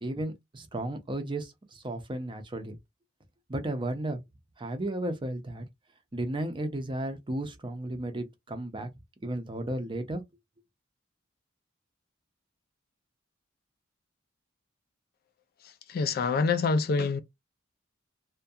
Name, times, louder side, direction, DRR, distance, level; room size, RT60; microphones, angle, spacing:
voice 1, 0.0-2.8 3.5-4.2 4.6-5.7 6.1-8.9 9.2-10.2, right 1 dB, 25° right, 0.6 m, -34 dB
voice 2, 15.9-17.2, left 4 dB, 50° left, 0.3 m, -26 dB
2.3 x 2.2 x 2.7 m
head